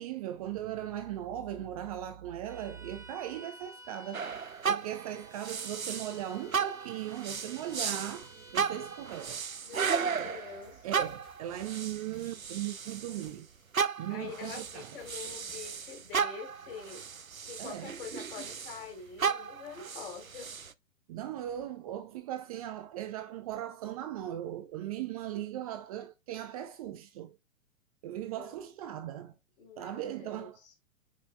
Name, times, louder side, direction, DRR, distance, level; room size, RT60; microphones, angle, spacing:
voice 1, 0.0-4.3 4.6-9.4 10.2-10.3 10.8-13.5 14.0-15.0 17.6-17.9 21.1-27.4 28.0-29.3 29.8-30.6, right 12 dB, 30° right, 0.7 m, -38 dB
Bowed string instrument, 2.4-9.4, right 1 dB, 10° right, 1.3 m, -53 dB
sound 1, 4.1-6.2 6.5-13.3 13.7-18.9 19.2-20.7, right 6 dB, 85° right, 0.7 m, -35 dB
sound 2, 8.2-8.5 9.1-11.7 12.1-12.5 13.0-15.7 16.1-16.2, left 3 dB, 10° left, 3.1 m, -61 dB
voice 2, 9.6-10.9 14.1-17.1 17.5-20.6 28.2-28.7 29.6-30.7, left 5 dB, 45° left, 3.7 m, -45 dB
9.5 x 5.7 x 2.3 m
figure-of-eight pair, 110°, 40 cm